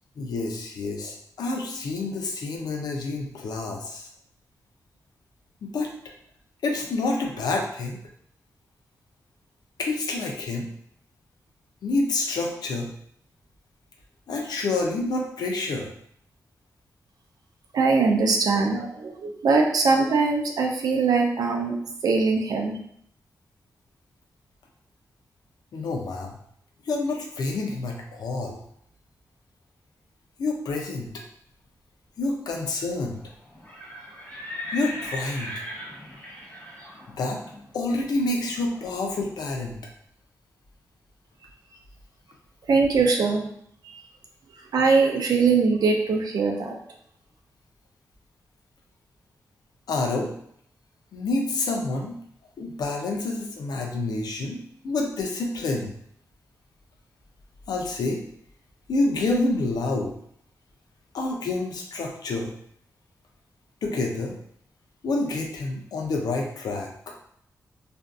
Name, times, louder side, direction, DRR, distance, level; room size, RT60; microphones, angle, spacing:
voice 1, 0.2-4.1 5.6-5.9 6.6-8.0 9.8-10.7 11.8-12.9 14.3-15.9 25.7-26.4 26.9-28.6 30.4-31.2 32.2-33.2 34.7-35.5 37.2-37.4 37.7-39.8 49.9-50.3 51.1-52.2 52.6-55.9 57.7-58.2 58.9-60.1 61.1-62.5 63.8-64.4 65.0-66.9, left 2 dB, 90° left, 1 dB, 0.5 m, -28 dB
voice 2, 17.7-21.7 22.0-22.8 42.7-43.5 43.8-43.9 44.7-46.8, right 4 dB, 75° right, 2 dB, 0.4 m, -21 dB
Livestock farm animals working animals, 33.5-39.3, left 1 dB, 25° left, 0.7 m, -39 dB
2.5 x 2.2 x 2.4 m, 0.68 s
wide cardioid pair, 140°, 7 cm